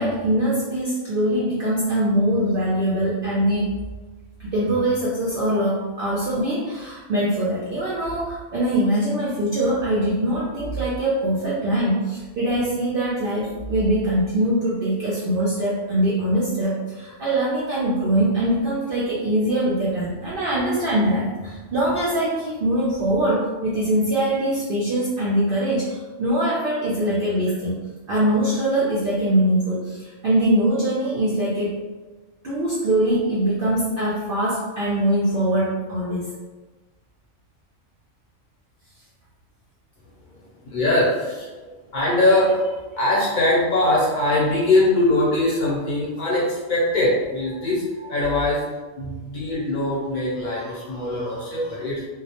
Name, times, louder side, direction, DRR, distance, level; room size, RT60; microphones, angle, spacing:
voice 1, 0.0-3.7 4.4-27.8 28.1-31.7 32.4-36.3, right 1 dB, 65° right, -7 dB, 0.5 m, -22 dB
voice 2, 40.3-48.6 49.0-52.1, left 2 dB, 50° left, -6 dB, 0.6 m, -22 dB
2.2 x 2.0 x 2.8 m, 1.3 s
omnidirectional pair, 1.4 m